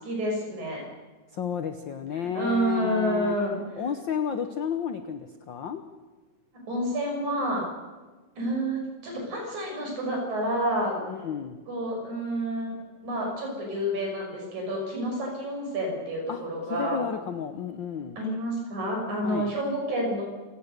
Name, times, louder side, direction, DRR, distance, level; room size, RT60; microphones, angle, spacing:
voice 1, 0.0-0.8 2.3-3.6 6.7-7.7 8.4-11.0 11.7-17.0 18.2-20.2, right 1 dB, 75° right, 0 dB, 7.4 m, -29 dB
voice 2, 1.3-3.4 3.8-5.8 11.1-11.6 16.3-16.4 16.7-18.2 19.2-19.5, left 7 dB, 70° left, 8 dB, 1.1 m, -32 dB
27.5 x 17.0 x 6.7 m, 1.3 s
omnidirectional pair, 3.4 m